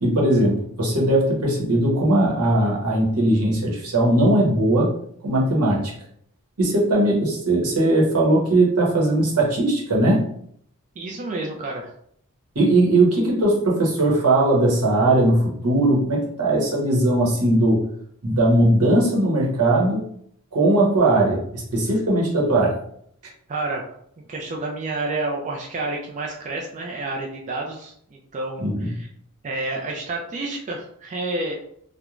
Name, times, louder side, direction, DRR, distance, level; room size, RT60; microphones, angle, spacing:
voice 1, 0.0-4.9 5.2-5.9 6.6-10.3 12.5-17.8 18.2-20.0 20.5-22.8 28.6-28.9, right 1 dB, 80° right, -3 dB, 0.9 m, -19 dB
voice 2, 11.0-11.9 23.5-23.8 24.3-29.1 29.4-31.6, right 2 dB, 35° right, -1 dB, 0.3 m, -29 dB
3.0 x 2.1 x 2.4 m, 0.66 s
head